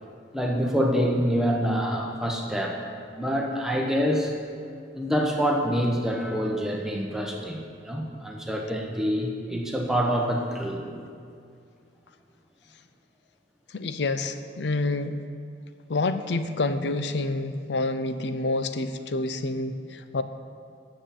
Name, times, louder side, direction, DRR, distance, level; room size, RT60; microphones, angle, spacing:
voice 1, 0.3-2.8 3.1-4.3 4.9-7.6 7.8-11.0, equal, 5° right, 0 dB, 0.9 m, -26 dB
voice 2, 13.7-15.2 15.9-20.2, left 2 dB, 75° left, 10 dB, 0.6 m, -28 dB
9.5 x 6.9 x 7.5 m, 2.4 s
head